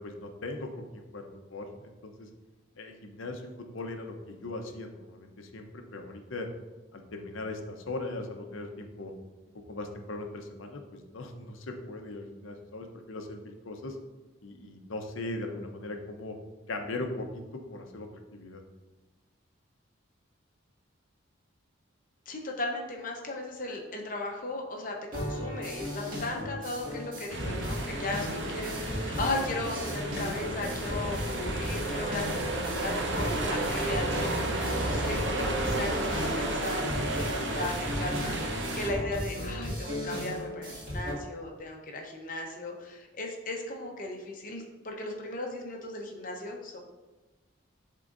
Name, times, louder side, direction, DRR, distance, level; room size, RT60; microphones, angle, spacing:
voice 1, 0.0-2.3 2.8-6.5 6.9-9.1 9.7-14.0 14.4-16.3 16.7-18.6 39.1-39.2, left 2 dB, 80° left, 4 dB, 0.7 m, -39 dB
voice 2, 22.3-32.5 32.8-46.8, left 2 dB, 40° left, 1 dB, 0.9 m, -36 dB
sound 1, 25.1-41.1, equal, 40° right, 2.0 m, -36 dB
sound 2, 27.3-38.9, right 2 dB, 60° right, 0.8 m, -32 dB
10.5 x 3.7 x 2.6 m, 1.2 s
head